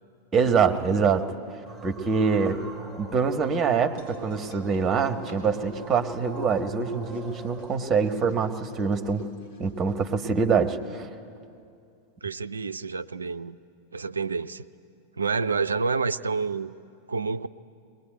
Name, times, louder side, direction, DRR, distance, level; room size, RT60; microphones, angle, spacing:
voice 1, 0.3-1.2 1.8-2.6 3.0-9.3 9.6-11.1, right 5 dB, 25° right, 7 dB, 1.3 m, -24 dB
sound 1, 1.7-7.8, right 4 dB, 10° left, 3.1 m, -41 dB
sound 2, 4.0-10.3, left 2 dB, 50° left, 2.9 m, -45 dB
voice 2, 12.2-13.6 13.9-14.7 15.2-16.8 17.1-17.5, right 4 dB, 75° right, 13 dB, 0.5 m, -28 dB
21.5 x 20.0 x 9.3 m, 2.5 s
figure-of-eight pair, 90°, 0 cm